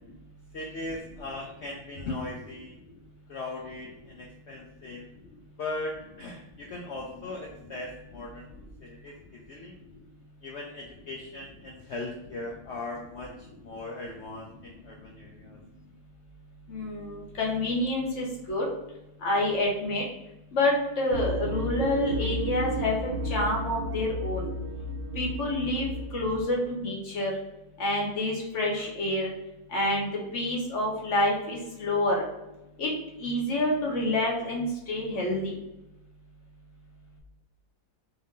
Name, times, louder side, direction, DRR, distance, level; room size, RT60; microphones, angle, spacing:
voice 1, 0.5-2.8 3.3-5.1 5.6-8.5 8.8-9.8 10.4-15.6, left 2 dB, 80° left, 0 dB, 0.6 m, -39 dB
voice 2, 16.7-18.7 19.2-20.0 20.5-24.5 25.1-25.9 26.1-27.3 27.8-29.3 29.7-30.1 30.3-32.2 32.8-32.9 33.2-35.5, left 1 dB, 50° left, -1 dB, 1.1 m, -28 dB
sound 1, 21.1-26.4, equal, 70° right, 0.9 m, -33 dB
3.9 x 2.5 x 3.6 m, 0.95 s
omnidirectional pair, 1.8 m